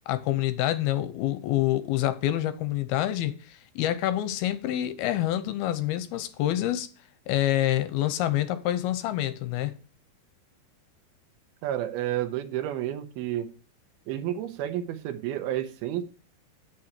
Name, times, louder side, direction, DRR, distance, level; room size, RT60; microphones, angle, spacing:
voice 1, 0.1-6.9 7.3-9.7, left 13 dB, 85° left, 2.5 m, -27 dB
voice 2, 11.6-13.5 14.1-16.0, right 12 dB, 80° right, 2.6 m, -30 dB
8.7 x 6.6 x 4.3 m
omnidirectional pair, 4.6 m